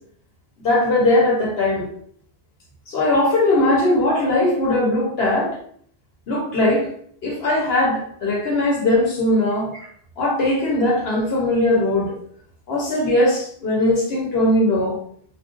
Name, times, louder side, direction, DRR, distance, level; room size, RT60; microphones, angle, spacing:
voice 1, 0.6-1.9 2.9-5.6 6.3-6.9 7.2-9.7 10.2-12.1 12.7-15.0, left 1 dB, 70° left, -2 dB, 1.2 m, -19 dB
2.5 x 2.3 x 3.7 m, 0.62 s
omnidirectional pair, 1.1 m